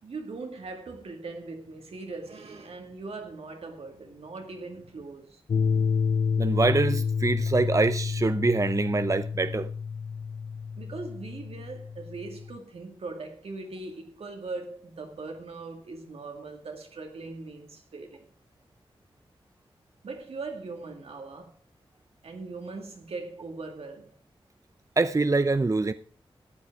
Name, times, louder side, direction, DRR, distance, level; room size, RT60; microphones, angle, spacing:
voice 1, 0.0-5.4 10.8-18.3 20.0-21.6 22.2-24.1, right 3 dB, 80° right, 2.1 m, -40 dB
sound 1, 5.5-12.6, left 6 dB, 65° left, 0.6 m, -29 dB
voice 2, 6.4-9.7 25.0-25.9, right 3 dB, 35° right, 0.6 m, -24 dB
13.5 x 8.6 x 4.8 m
cardioid pair, 50°, 10 cm